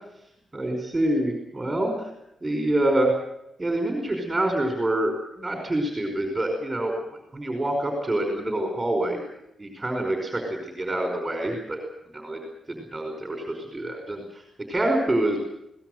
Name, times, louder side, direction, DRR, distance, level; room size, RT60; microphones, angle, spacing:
voice 1, 0.5-2.1 2.4-3.1 3.6-9.2 9.6-11.8 12.1-12.4 12.7-14.4 14.7-15.4, right 1 dB, 15° right, 2 dB, 4.9 m, -26 dB
23.5 x 18.0 x 7.9 m, 0.79 s
wide cardioid pair, 135°, 0 cm